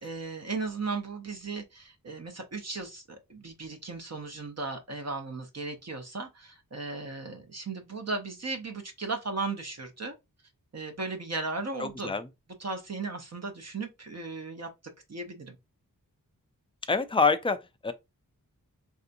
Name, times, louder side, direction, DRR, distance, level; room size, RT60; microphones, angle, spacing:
voice 1, 0.0-10.1 10.7-12.1 12.6-14.7 15.1-15.6, right 3 dB, 45° right, 0.7 m, -36 dB
voice 2, 11.8-12.3 16.9-17.9, left 4 dB, 15° left, 0.4 m, -26 dB
3.4 x 2.7 x 2.5 m
cardioid pair, 55°, 36 cm